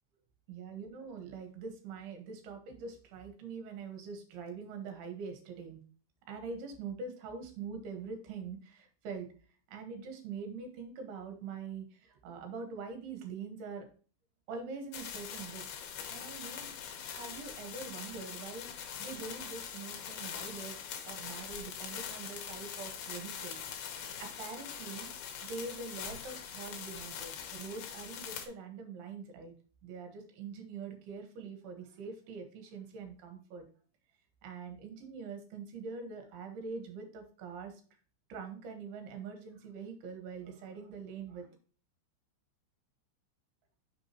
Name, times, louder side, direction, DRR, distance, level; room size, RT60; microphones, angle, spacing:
voice 1, 0.5-5.8 6.3-9.3 9.7-13.9 14.5-15.6 16.1-16.7 17.1-20.8 21.1-23.6 24.2-25.1 25.4-29.5 29.8-33.6 34.4-37.7 38.3-41.5, right 5 dB, 65° right, 5 dB, 3.0 m, -44 dB
sound 1, 14.9-28.5, left 8 dB, 70° left, 2.5 m, -43 dB
6.5 x 6.3 x 2.9 m, 0.40 s
omnidirectional pair, 5.5 m